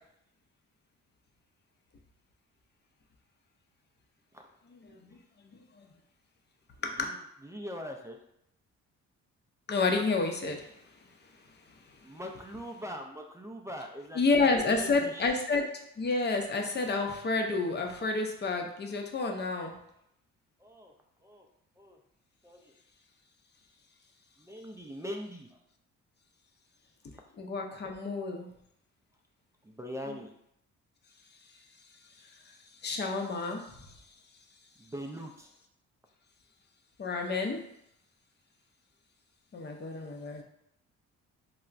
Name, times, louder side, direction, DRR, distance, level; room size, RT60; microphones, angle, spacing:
voice 1, 5.4-5.9 6.8-7.1 9.7-10.7 14.1-15.6 16.0-19.7 27.4-28.5 32.8-33.8 37.0-37.6 39.5-40.4, left 3 dB, 35° left, 2 dB, 0.6 m, -30 dB
voice 2, 6.9-8.2 12.0-15.3 20.6-20.9 21.2-21.5 21.8-22.0 22.4-22.7 24.4-25.6 29.6-30.3 34.8-35.5, equal, 10° right, 2 dB, 0.3 m, -42 dB
4.4 x 2.1 x 2.4 m, 0.77 s
cardioid pair, 90°, 30 cm